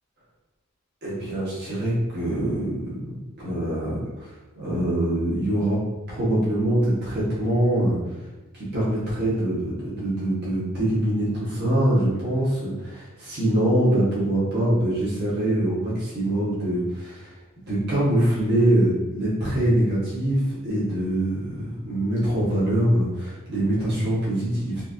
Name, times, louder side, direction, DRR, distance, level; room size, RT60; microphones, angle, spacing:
voice 1, 1.0-5.8 6.1-8.0 8.5-17.3 17.6-24.8, right 1 dB, 55° right, -8 dB, 1.2 m, -24 dB
4.1 x 2.6 x 2.6 m, 1.1 s
head